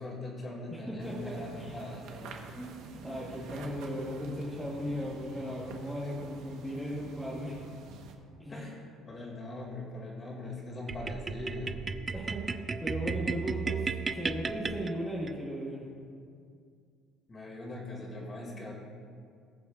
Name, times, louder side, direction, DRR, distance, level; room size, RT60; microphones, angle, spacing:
voice 1, 0.0-2.3 8.5-11.9 17.3-18.7, left 1 dB, 25° left, -2 dB, 2.3 m, -41 dB
voice 2, 0.7-1.8 2.5-7.6 8.4-8.7 12.1-15.8, equal, ahead, -7 dB, 1.2 m, -37 dB
sound 1, 1.0-8.2, right 4 dB, 75° right, 1.1 m, -46 dB
sound 2, 10.9-15.4, right 5 dB, 20° right, 0.3 m, -35 dB
20.5 x 7.0 x 2.4 m, 2.2 s
cardioid pair, 155°, 0 cm